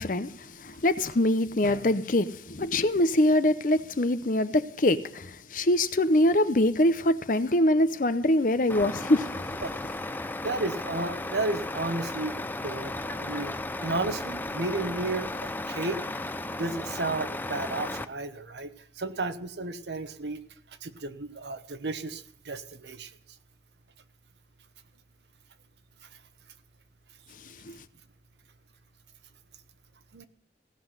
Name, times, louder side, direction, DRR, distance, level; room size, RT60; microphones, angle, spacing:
voice 1, 0.0-9.4 27.4-27.8, left 1 dB, 50° left, 0.7 m, -24 dB
Truck, 8.7-18.1, left 2 dB, 10° left, 0.5 m, -35 dB
voice 2, 9.6-13.5 13.8-16.0 16.6-20.4 20.8-23.1 30.1-30.3, right 2 dB, 75° right, 1.0 m, -33 dB
16.5 x 6.1 x 9.7 m
head